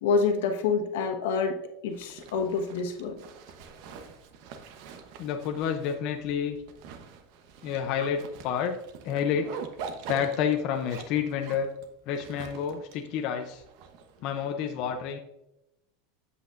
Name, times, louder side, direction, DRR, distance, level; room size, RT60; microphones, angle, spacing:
voice 1, 0.0-1.6 1.8-3.2, left 5 dB, 80° left, 4 dB, 1.2 m, -27 dB
Zipper (clothing), 1.9-14.4, right 5 dB, 55° right, 1.0 m, -45 dB
voice 2, 5.2-6.6 7.6-8.8 9.0-9.6 10.1-11.7 12.1-13.6 14.2-15.2, left 8 dB, 45° left, 5 dB, 0.6 m, -29 dB
8.1 x 8.0 x 2.5 m, 0.90 s
supercardioid pair, 155°, 0 cm